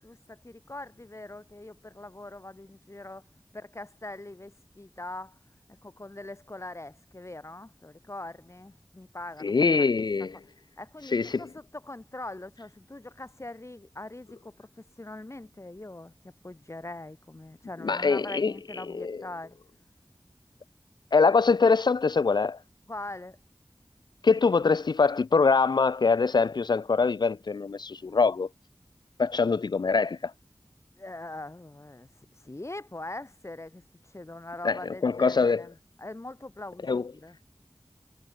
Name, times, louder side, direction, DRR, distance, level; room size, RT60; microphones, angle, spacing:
voice 1, 0.0-3.2 3.5-5.4 5.8-9.9 10.8-19.6 22.9-23.4 31.0-32.1 32.4-37.4, left 2 dB, 40° left, 2.4 m, -42 dB
voice 2, 9.4-10.4 11.0-11.4 17.8-19.2 21.1-22.6 24.2-28.5 29.2-30.3 34.6-35.6 36.9-37.0, left 4 dB, 70° left, 0.4 m, -24 dB
wide cardioid pair, 45°, 8 cm